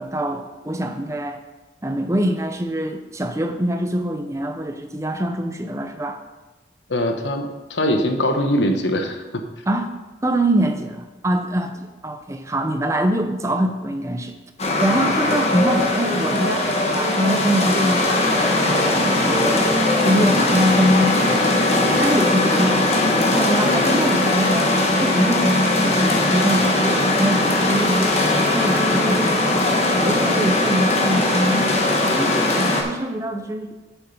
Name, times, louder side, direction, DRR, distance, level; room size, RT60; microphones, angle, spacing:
voice 1, 0.0-1.4 1.8-6.2 9.7-9.9 10.2-14.3 14.8-19.7 20.0-21.5 22.0-22.8 23.1-29.7 30.0-33.8, equal, 15° right, 6 dB, 0.6 m, -24 dB
voice 2, 6.9-9.4 15.0-15.4 21.9-22.1, equal, 80° left, 5 dB, 1.0 m, -23 dB
sound 1, 14.6-32.8, left 2 dB, 35° left, 1.2 m, -19 dB
7.3 x 7.2 x 5.5 m, 1.2 s
head